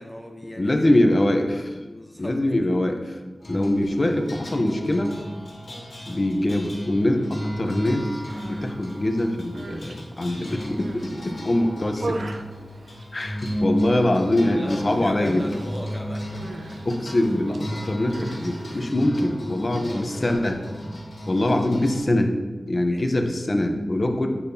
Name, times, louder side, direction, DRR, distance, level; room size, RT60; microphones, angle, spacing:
voice 1, 0.0-0.8 1.8-2.4 13.7-13.8 14.6-16.8 18.6-18.9 19.6-20.3 22.9-23.0, equal, 5° left, 1 dB, 1.2 m, -39 dB
voice 2, 0.6-1.8 2.2-3.2 3.5-5.2 6.1-12.1 13.1-15.5 16.9-20.6 21.3-22.3 22.7-24.3, left 1 dB, 35° left, 4 dB, 0.8 m, -23 dB
sound 1, 3.4-22.0, equal, 60° left, 2.4 m, -34 dB
Human voice, 8.2-8.8 9.3-11.2 11.6-13.6 13.8-14.3 14.5-14.8 15.2-18.9, right 2 dB, 70° right, 0.5 m, -39 dB
8.3 x 7.2 x 2.8 m, 1.3 s
wide cardioid pair, 100°, 0 cm